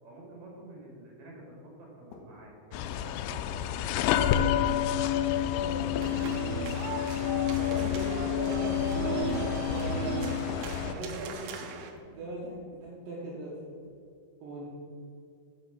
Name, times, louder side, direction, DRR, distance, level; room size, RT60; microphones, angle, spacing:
voice 1, 0.0-4.9, right 1 dB, 45° right, -2 dB, 3.0 m, -50 dB
sound 1, 2.1-2.6 3.3-4.1 4.8-5.1 5.8-7.0 7.3-7.5 7.8-9.1 10.4-12.2 12.5-12.8 13.8-14.0, left 3 dB, 75° left, 3.2 m, -50 dB
sound 2, 2.7-10.9, left 11 dB, 90° left, 2.6 m, -29 dB
voice 2, 5.4-6.1 7.6-10.0 10.8-11.7 12.1-13.5 14.4-14.7, right 1 dB, 70° right, -5 dB, 2.2 m, -39 dB
sound 3, 6.0-11.9, right 5 dB, 90° right, 2.2 m, -36 dB
7.9 x 6.9 x 5.9 m, 2.4 s
omnidirectional pair, 5.7 m